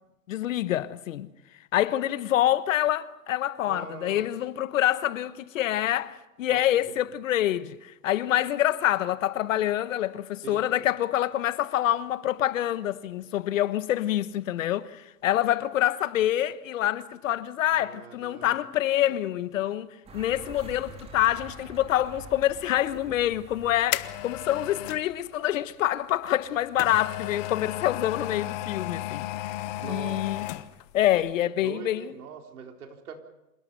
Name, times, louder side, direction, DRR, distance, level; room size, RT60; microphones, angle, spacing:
voice 1, 0.3-1.3 1.7-19.9 20.1-30.4 30.9-32.1, left 13 dB, 60° left, 1.2 m, -26 dB
voice 2, 3.6-4.3 6.5-7.0 10.4-10.9 17.7-18.6 29.7-30.2 30.5-30.6 31.4-33.2, right 6 dB, 75° right, 3.9 m, -43 dB
sound 1, 20.1-25.7, right 1 dB, 15° right, 4.0 m, -46 dB
sound 2, 23.3-25.1 26.3-30.9 31.2-31.3, left 15 dB, 30° left, 0.8 m, -34 dB
27.0 x 17.5 x 6.8 m
hypercardioid pair, 150°, 44 cm